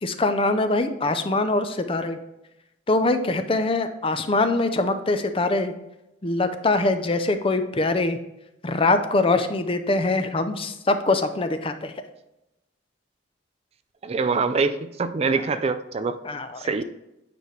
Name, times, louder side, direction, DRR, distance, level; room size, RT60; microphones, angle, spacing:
voice 1, 0.0-2.2 2.9-5.7 6.2-8.2 8.6-11.9 16.2-16.7, left 2 dB, 30° left, 9 dB, 0.5 m, -23 dB
voice 2, 14.0-16.2 16.6-16.8, right 4 dB, 30° right, 11 dB, 0.3 m, -24 dB
9.1 x 5.0 x 3.2 m, 0.92 s
head